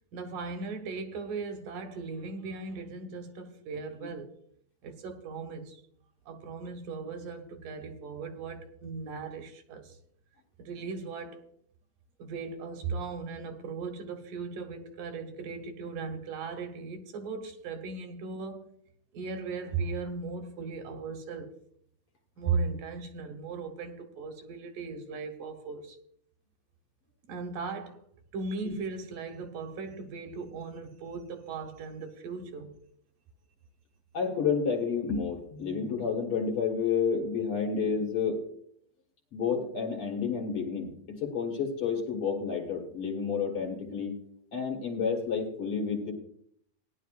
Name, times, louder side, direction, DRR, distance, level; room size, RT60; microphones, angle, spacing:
voice 1, 0.1-4.4 4.8-5.8 6.3-10.0 10.6-11.4 12.2-18.7 19.1-21.5 22.4-26.0 27.3-28.0 28.3-32.7, right 4 dB, 80° right, 2.8 m, -37 dB
voice 2, 34.1-38.4 39.3-44.1 44.5-46.1, left 6 dB, 50° left, 2.2 m, -30 dB
18.5 x 10.5 x 2.5 m
omnidirectional pair, 3.7 m